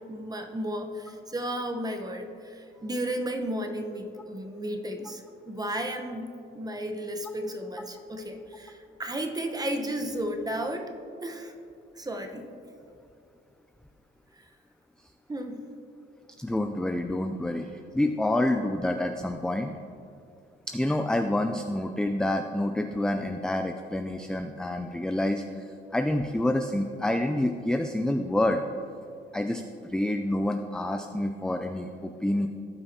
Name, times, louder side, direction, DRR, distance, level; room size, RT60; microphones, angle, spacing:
voice 1, 0.1-10.9 11.2-11.5 11.9-12.5 14.3-14.4 15.3-15.6, right 1 dB, 20° right, 4 dB, 1.0 m, -33 dB
voice 2, 16.4-19.7 20.7-28.6 29.3-29.6 29.9-32.5, left 1 dB, 5° left, 6 dB, 0.4 m, -28 dB
16.5 x 5.6 x 2.8 m, 2.5 s
cardioid pair, 90°, 20 cm